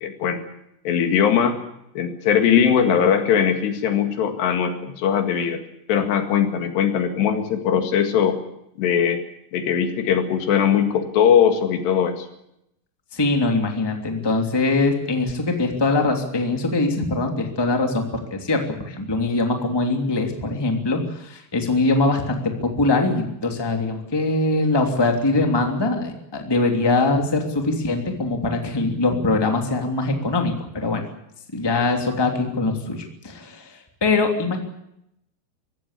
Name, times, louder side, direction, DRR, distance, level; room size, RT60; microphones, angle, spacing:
voice 1, 0.0-0.4 0.9-1.6 2.0-5.6 5.9-8.4 8.8-9.2 9.5-12.3, left 8 dB, 75° left, 6 dB, 4.1 m, -20 dB
voice 2, 13.1-31.0 31.5-34.6, left 2 dB, 5° left, 3 dB, 2.2 m, -22 dB
24.0 x 16.5 x 8.3 m, 0.79 s
omnidirectional pair, 5.0 m